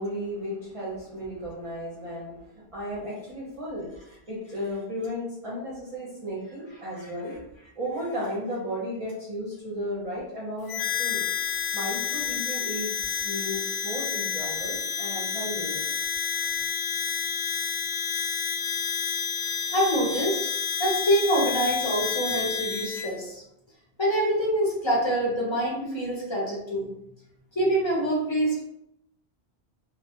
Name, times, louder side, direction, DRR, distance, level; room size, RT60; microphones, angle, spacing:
voice 1, 0.0-3.9 4.3-7.4 7.8-11.2 11.7-15.8, equal, 40° right, -8 dB, 0.6 m, -34 dB
Harmonica, 10.7-23.1, left 7 dB, 80° left, 0.8 m, -30 dB
voice 2, 19.7-20.4 20.8-23.4 24.0-26.9 27.6-28.7, right 1 dB, 30° left, -4 dB, 0.7 m, -25 dB
2.2 x 2.1 x 2.7 m, 0.82 s
omnidirectional pair, 1.1 m